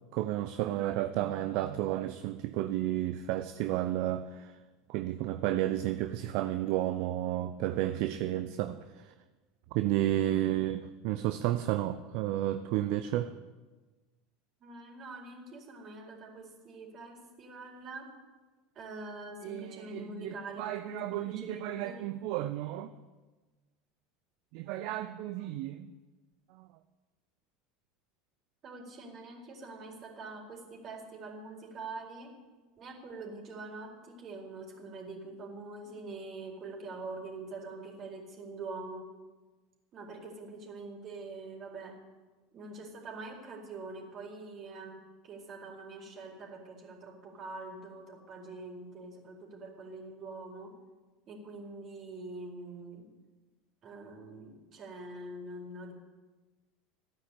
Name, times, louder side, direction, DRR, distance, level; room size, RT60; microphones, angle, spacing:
voice 1, 0.1-4.6 4.9-9.1 9.7-13.3 19.4-22.9 24.5-25.9 26.5-26.7, right 13 dB, 60° right, 10 dB, 0.7 m, -32 dB
voice 2, 14.6-18.1 18.7-22.1 28.6-32.3 32.8-39.1 39.9-42.0 42.5-45.0 45.2-50.7 51.3-53.1 53.8-55.9, right 3 dB, 40° right, 1 dB, 4.3 m, -44 dB
15.0 x 9.6 x 8.6 m, 1.3 s
hypercardioid pair, 80°, 0 cm